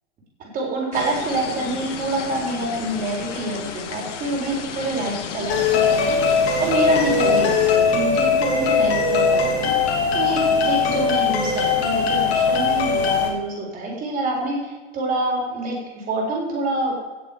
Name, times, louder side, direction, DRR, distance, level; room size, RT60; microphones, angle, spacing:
voice 1, 0.4-6.2 6.6-9.7 10.1-16.9, right 2 dB, 25° right, -2 dB, 4.0 m, -26 dB
sound 1, 0.9-7.8, left 7 dB, 85° left, 1.8 m, -33 dB
sound 2, 5.5-13.3, left 5 dB, 65° left, 3.0 m, -20 dB
17.0 x 7.3 x 5.3 m, 1.2 s
supercardioid pair, 155°, 35 cm